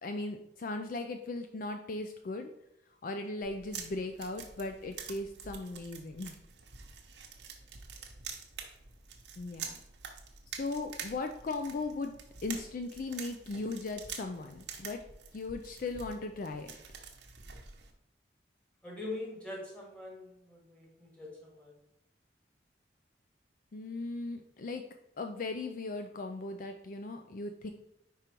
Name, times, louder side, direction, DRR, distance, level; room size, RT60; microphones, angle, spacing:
voice 1, 0.0-2.5 3.0-6.3 9.4-9.8 10.5-15.0 15.3-16.7 23.7-24.8 25.2-27.7, left 3 dB, 50° left, 6 dB, 0.4 m, -38 dB
sound 1, 3.4-17.9, right 6 dB, 75° right, 0.9 m, -47 dB
voice 2, 18.8-21.7, left 2 dB, 5° left, -3 dB, 1.9 m, -43 dB
5.2 x 4.7 x 4.4 m, 0.81 s
head